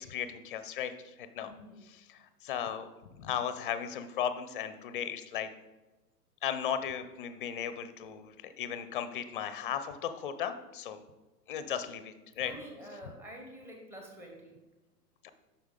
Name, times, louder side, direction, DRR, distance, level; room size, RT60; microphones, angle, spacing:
voice 1, 0.0-1.5 1.9-2.2 2.4-2.9 3.2-5.5 6.4-11.0 11.5-12.5 13.0-13.1 15.2-15.3, left 9 dB, 35° left, 11 dB, 0.5 m, -36 dB
voice 2, 1.5-1.8 12.4-14.5, equal, 5° right, 1 dB, 0.9 m, -47 dB
7.9 x 5.7 x 3.7 m, 1.1 s
figure-of-eight pair, 110°, 49 cm